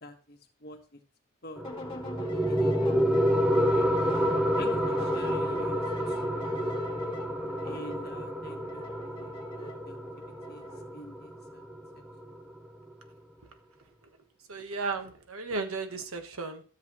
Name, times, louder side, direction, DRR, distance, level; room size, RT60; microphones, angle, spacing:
voice 1, 0.0-1.0 1.4-1.7 2.3-2.8 3.0-3.2 3.7-3.9 4.6-6.6 7.6-10.7 10.9-11.6 11.9-12.5, left 1 dB, 45° left, 5 dB, 1.4 m, -47 dB
sound 1, 1.6-11.0, left 2 dB, 25° left, 1.7 m, -43 dB
sound 2, 1.6-12.6, equal, 5° right, 0.7 m, -29 dB
voice 2, 14.5-16.6, right 3 dB, 85° right, 6 dB, 1.3 m, -34 dB
13.0 x 7.5 x 3.0 m, 0.39 s
head